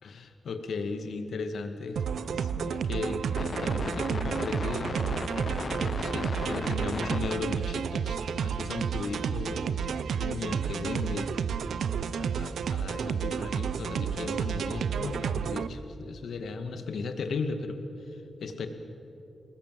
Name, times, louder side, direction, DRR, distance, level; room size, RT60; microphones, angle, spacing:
voice 1, 0.0-5.0 5.8-11.3 12.1-17.8 18.1-18.7, left 4 dB, 70° left, 7 dB, 2.2 m, -36 dB
sound 1, 2.0-15.7, right 7 dB, 85° right, 0.7 m, -31 dB
sound 2, 3.4-7.3, left 4 dB, 35° left, 0.8 m, -36 dB
29.0 x 20.0 x 7.8 m, 2.9 s
wide cardioid pair, 155°, 0 cm